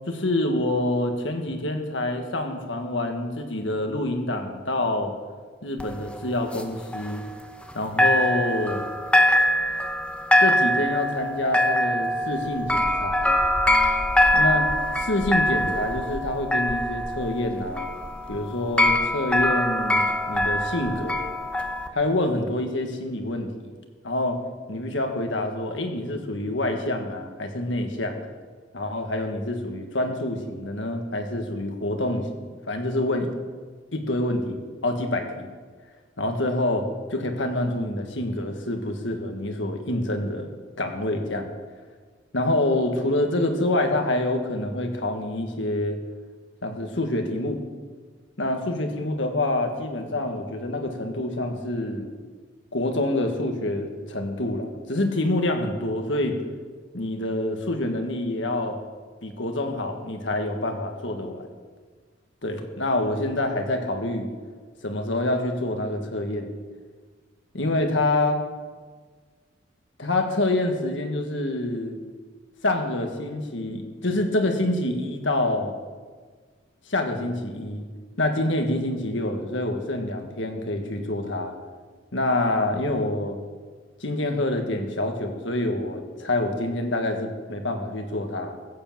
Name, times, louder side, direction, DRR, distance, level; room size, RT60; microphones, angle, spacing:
voice 1, 0.1-5.1 5.6-7.2 7.7-8.8 10.4-13.5 14.3-14.7 14.9-17.9 18.3-21.2 21.9-23.5 24.0-24.4 24.7-28.2 28.7-33.3 33.9-35.5 36.2-40.5 40.8-41.5 42.3-46.0 46.6-47.6 48.4-52.1 52.7-56.4 56.9-58.8 59.2-61.5 62.4-64.3 64.8-66.5 67.5-68.4 70.0-72.0 72.6-75.7 76.9-77.8 78.2-81.5 82.1-83.4 84.0-88.6, left 1 dB, 75° left, 4 dB, 1.7 m, -26 dB
sound 1, 5.8-7.7 8.0-21.9, left 1 dB, 5° left, 0.9 m, -23 dB
15.5 x 7.5 x 7.4 m, 1.5 s
head